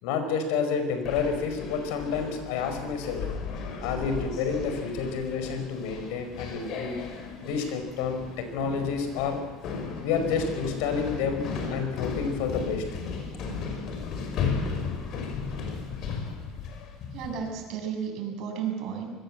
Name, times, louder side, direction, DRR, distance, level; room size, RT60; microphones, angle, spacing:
voice 1, 0.0-3.2 3.8-7.0 7.4-9.4 10.0-12.8, left 5 dB, 80° left, 7 dB, 5.3 m, -29 dB
sound 1, 1.0-17.5, left 5 dB, 50° left, 5.5 m, -35 dB
voice 2, 17.1-19.1, right 7 dB, 55° right, 2 dB, 7.6 m, -33 dB
26.0 x 21.5 x 7.7 m, 1.3 s
cardioid pair, 145°, 0 cm